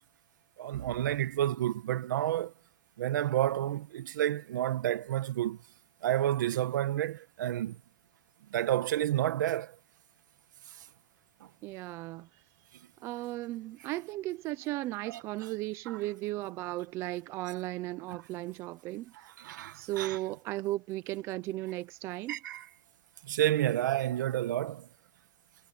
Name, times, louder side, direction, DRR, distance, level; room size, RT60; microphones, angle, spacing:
voice 1, 0.6-2.5 3.0-5.6 6.0-7.8 8.5-9.7 15.1-15.2 15.9-16.0 19.4-20.2 22.3-22.6 23.2-24.9, right 12 dB, 65° right, 1.3 m, -30 dB
voice 2, 11.6-12.3 13.0-19.3 19.7-22.4, right 17 dB, 25° right, 0.6 m, -36 dB
supercardioid pair, 170°, 11 cm